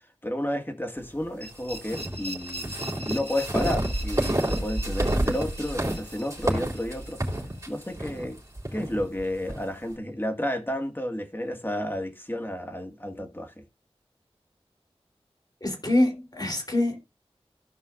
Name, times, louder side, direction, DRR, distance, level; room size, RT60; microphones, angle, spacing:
voice 1, 0.2-2.7 3.1-7.2 7.7-8.4 8.7-13.6, left 1 dB, 20° left, 2.0 m, -31 dB
sound 1, 1.4-8.2, right 1 dB, 85° right, 1.8 m, -42 dB
sound 2, 1.7-9.6, right 1 dB, 30° right, 3.9 m, -29 dB
voice 2, 15.6-17.0, left 1 dB, 40° left, 3.5 m, -25 dB
16.0 x 5.5 x 2.5 m
wide cardioid pair, 50°, 11 cm